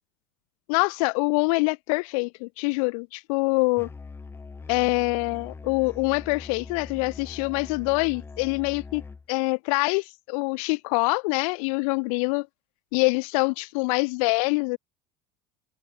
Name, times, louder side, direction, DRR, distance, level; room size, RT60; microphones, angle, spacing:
voice 1, 0.7-3.9 4.7-9.0 9.3-12.5 12.9-14.8, left 30 dB, 90° left, 1.3 m, -25 dB
Musical instrument, 3.8-9.3, left 4 dB, 15° left, 2.4 m, -42 dB
cardioid pair, 165°, 18 cm